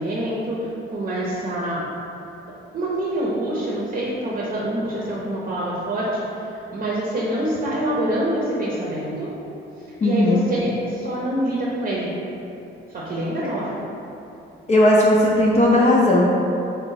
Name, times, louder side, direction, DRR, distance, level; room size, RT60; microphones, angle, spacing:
voice 1, 0.0-1.8 2.7-9.3 10.0-12.1 12.9-13.7, right 1 dB, 40° right, -5 dB, 0.7 m, -26 dB
voice 2, 10.0-10.4 14.7-16.3, left 1 dB, 35° left, -5 dB, 0.5 m, -16 dB
3.8 x 2.3 x 3.9 m, 2.9 s
cardioid pair, 90°, 20 cm